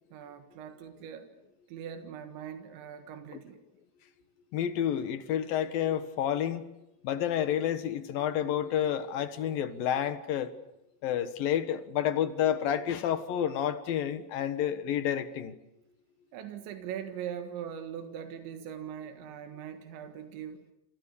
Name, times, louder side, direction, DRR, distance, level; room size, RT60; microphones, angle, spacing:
voice 1, 0.1-1.3 1.7-3.6 16.3-20.6, right 9 dB, 90° right, 3.9 m, -41 dB
voice 2, 4.5-6.7 7.0-10.5 11.0-15.5, left 10 dB, 65° left, 2.8 m, -29 dB
28.5 x 28.0 x 7.0 m
omnidirectional pair, 5.1 m